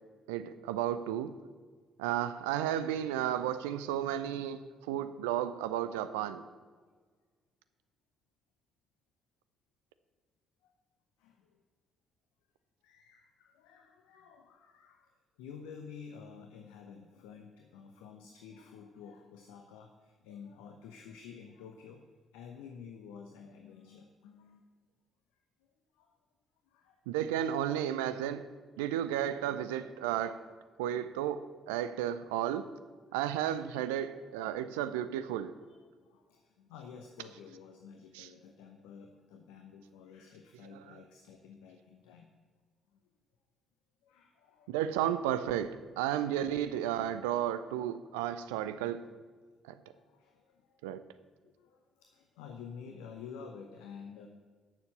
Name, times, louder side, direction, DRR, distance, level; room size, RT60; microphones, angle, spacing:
voice 1, 0.3-1.3 2.0-6.4 27.1-28.4 28.8-30.4 30.8-32.7 33.1-35.6 38.1-38.3 44.7-49.1 49.6-49.7 50.8-51.0, right 11 dB, 75° right, 0.5 m, -33 dB
voice 2, 11.2-11.5 12.8-22.0 22.3-24.6 25.9-26.2 26.7-27.0 30.0-30.5 33.1-34.7 35.7-42.3 42.9-43.0 44.0-44.7 49.9-50.8 51.4-54.3, left 6 dB, 75° left, 0.8 m, -51 dB
10.5 x 7.0 x 7.4 m
figure-of-eight pair, 45°, 0 cm